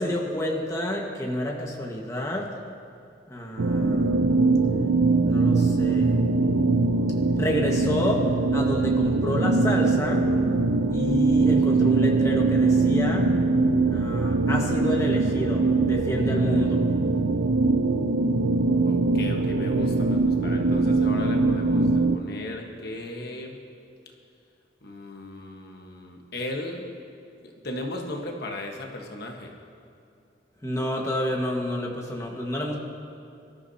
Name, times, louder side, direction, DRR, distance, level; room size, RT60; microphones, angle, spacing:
voice 1, 0.0-2.5 3.3-4.3 5.2-6.1 7.4-10.2 10.9-13.3 13.9-16.8 30.6-32.8, left 1 dB, 15° left, -1 dB, 1.5 m, -29 dB
sound 1, 3.6-22.2, right 3 dB, 85° right, 0.6 m, -22 dB
voice 2, 18.8-23.6 24.8-26.9 27.4-29.5, left 1 dB, 55° left, 1 dB, 1.3 m, -36 dB
24.5 x 13.0 x 2.8 m, 2.6 s
head